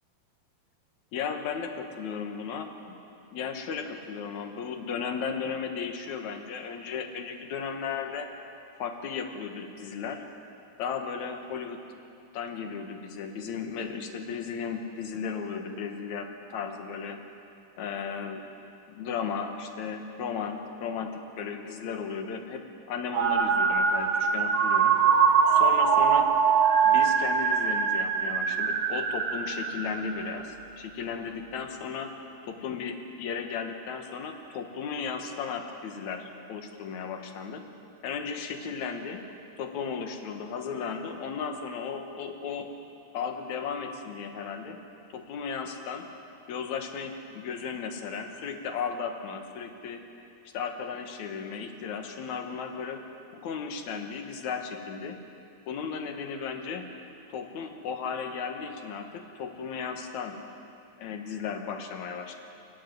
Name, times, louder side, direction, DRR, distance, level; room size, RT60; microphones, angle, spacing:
voice 1, 1.1-3.0 3.3-8.3 8.8-10.2 10.8-11.8 12.3-17.2 17.8-18.4 18.9-25.0 25.5-26.3 26.8-32.2 32.4-37.6 38.0-39.2 39.6-42.7 43.1-44.8 45.1-46.1 46.5-50.0 50.5-53.0 53.4-55.2 55.7-56.9 57.3-60.4 61.0-62.3, left 6 dB, 60° left, 5 dB, 2.3 m, -35 dB
sound 1, 23.1-30.4, right 6 dB, 65° right, 1.8 m, -23 dB
23.5 x 13.5 x 9.4 m, 2.7 s
omnidirectional pair, 4.5 m